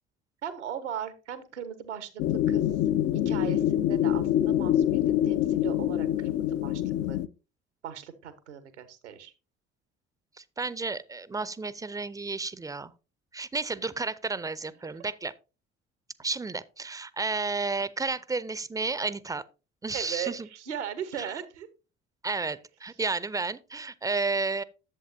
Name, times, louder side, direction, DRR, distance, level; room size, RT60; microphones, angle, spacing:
voice 1, 0.4-2.6 3.2-7.2 7.8-9.3 14.2-14.3 19.9-21.7, right 9 dB, 75° right, 1.2 m, -38 dB
sound 1, 2.2-7.3, left 11 dB, 45° left, 0.6 m, -25 dB
voice 2, 10.4-12.9 13.3-15.3 16.2-19.4 19.8-20.5 21.2-21.3 22.2-24.6, right 3 dB, 10° right, 0.6 m, -32 dB
11.0 x 7.8 x 2.7 m
figure-of-eight pair, 50°, 35 cm